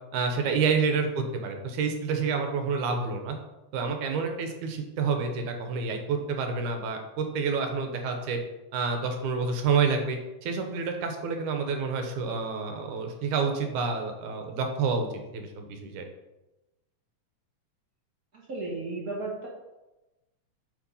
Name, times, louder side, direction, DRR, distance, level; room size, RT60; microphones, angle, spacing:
voice 1, 0.1-3.4 3.7-8.4 8.7-15.1 15.3-16.0, right 5 dB, 80° right, 4 dB, 2.4 m, -28 dB
voice 2, 18.3-19.5, right 3 dB, 35° right, -3 dB, 1.6 m, -34 dB
7.7 x 4.6 x 5.4 m, 1.0 s
omnidirectional pair, 3.5 m